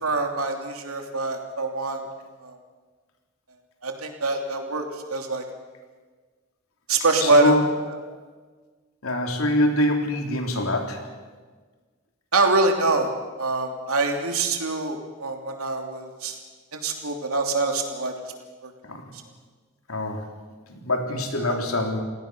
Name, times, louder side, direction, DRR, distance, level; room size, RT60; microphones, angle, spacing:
voice 1, 0.0-2.0 2.4-2.6 3.8-5.4 6.9-7.6 7.9-8.0 12.3-13.1 13.4-16.4 16.7-18.3 18.6-18.7 21.5-21.6, right 3 dB, 90° right, 3 dB, 3.1 m, -24 dB
voice 2, 7.2-7.6 9.0-11.0 18.8-19.0 19.9-20.3 20.7-22.0, left 1 dB, 80° left, 3 dB, 3.5 m, -24 dB
28.5 x 17.5 x 6.3 m, 1.4 s
head